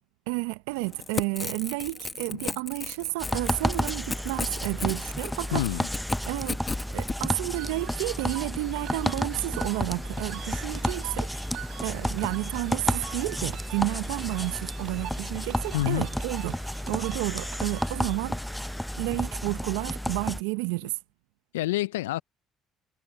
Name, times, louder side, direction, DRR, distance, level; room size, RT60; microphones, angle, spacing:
voice 1, 0.3-5.7 6.2-6.6 6.9-11.4 11.8-18.4 19.0-21.0, right 24 dB, 80° right, 0.8 m, -31 dB
Crackle / Tearing, 0.8-7.2, left 4 dB, 25° left, 1.4 m, -35 dB
sound 1, 3.2-20.4, equal, 5° left, 0.7 m, -32 dB
voice 2, 5.5-5.9 15.7-16.0 21.5-22.2, left 17 dB, 85° left, 0.4 m, -27 dB
sound 2, 7.5-18.2, right 13 dB, 65° right, 6.8 m, -45 dB
hypercardioid pair, 55°, 0 cm